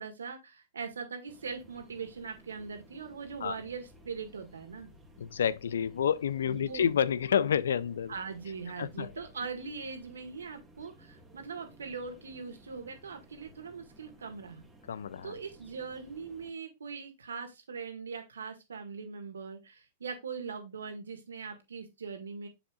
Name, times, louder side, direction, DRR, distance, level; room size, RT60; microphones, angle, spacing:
voice 1, 0.0-4.9 6.4-6.8 8.1-14.6 15.2-22.5, right 5 dB, 80° right, 1.9 m, -41 dB
sound 1, 1.3-16.5, right 1 dB, 10° right, 1.8 m, -57 dB
voice 2, 5.2-8.1 8.8-9.1 14.9-15.4, left 8 dB, 75° left, 0.5 m, -29 dB
7.2 x 6.7 x 2.4 m
hypercardioid pair, 110°, 0 cm